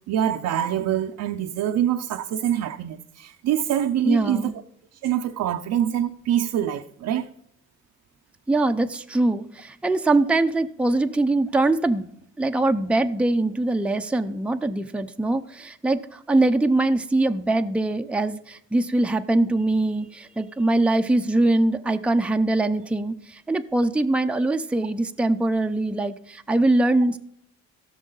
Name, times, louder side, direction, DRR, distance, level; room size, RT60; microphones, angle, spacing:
voice 1, 0.1-4.5 5.0-7.3 17.5-17.6, right 10 dB, 80° right, 0.7 m, -25 dB
voice 2, 4.0-4.5 8.5-12.1 12.4-27.2, right 2 dB, 5° right, 0.6 m, -22 dB
16.5 x 6.3 x 3.9 m
cardioid pair, 90°, 30 cm